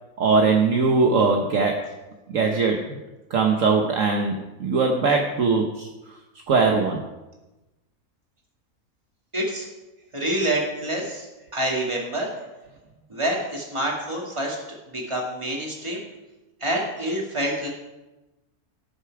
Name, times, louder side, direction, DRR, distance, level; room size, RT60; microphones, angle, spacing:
voice 1, 0.2-1.8 2.3-3.0 3.3-5.9 6.5-7.0 12.4-12.5, right 4 dB, 60° right, 2 dB, 1.3 m, -21 dB
voice 2, 9.3-9.7 10.1-11.2 11.5-12.3 13.1-14.6 14.9-16.0 16.6-17.7, right 1 dB, 20° right, -2 dB, 2.4 m, -27 dB
17.5 x 6.7 x 4.8 m, 1.0 s
omnidirectional pair, 1.6 m